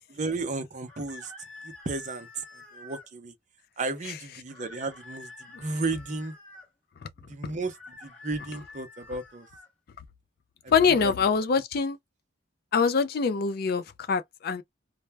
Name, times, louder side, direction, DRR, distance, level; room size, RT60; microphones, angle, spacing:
voice 1, 0.1-1.3 1.6-2.4 2.7-3.3 3.8-6.4 7.2-9.5 10.6-10.7 11.0-11.1, right 3 dB, 40° right, 0.5 m, -34 dB
sound 1, 0.9-3.1 4.5-6.7 7.6-9.7, left 2 dB, 5° left, 0.8 m, -48 dB
voice 2, 10.7-12.0 12.7-14.6, left 5 dB, 50° left, 0.4 m, -24 dB
2.1 x 2.0 x 3.3 m
head